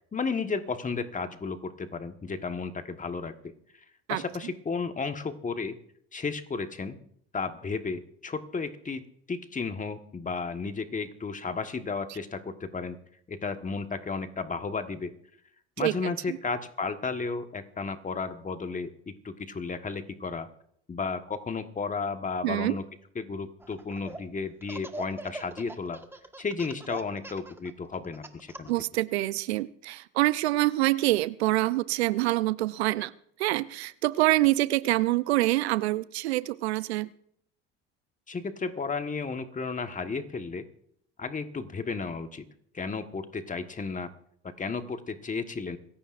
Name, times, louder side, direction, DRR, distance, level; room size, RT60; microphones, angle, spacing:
voice 1, 0.1-3.4 4.1-5.8 6.1-7.0 7.3-13.0 13.3-15.1 15.8-20.5 20.9-22.8 23.1-26.0 26.4-28.7 38.3-40.6 41.2-42.4 42.7-44.1 44.6-45.8, left 4 dB, 25° left, 8 dB, 1.4 m, -33 dB
voice 2, 22.4-22.8 28.7-33.1 33.4-37.1, right 18 dB, 80° right, 17 dB, 0.6 m, -26 dB
Laughter, 23.6-24.2 24.6-28.8, right 2 dB, 5° right, 1.5 m, -40 dB
26.5 x 15.0 x 2.6 m, 0.69 s
hypercardioid pair, 70°, 32 cm